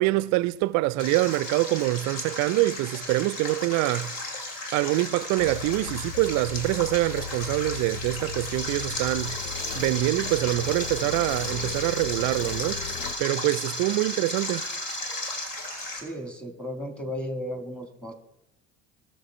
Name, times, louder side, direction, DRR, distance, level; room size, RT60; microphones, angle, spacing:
voice 1, 0.0-4.2 4.7-9.4 9.8-12.8 13.2-14.6, right 19 dB, 50° right, 0.4 m, -25 dB
Stream, 1.0-16.0, left 2 dB, 60° left, 2.3 m, -36 dB
sound 1, 5.4-13.2, left 8 dB, 80° left, 0.6 m, -38 dB
sound 2, 8.6-15.4, equal, 30° left, 2.5 m, -36 dB
voice 2, 15.9-18.1, equal, 5° left, 1.7 m, -35 dB
19.0 x 6.7 x 3.3 m
hypercardioid pair, 65°, 38 cm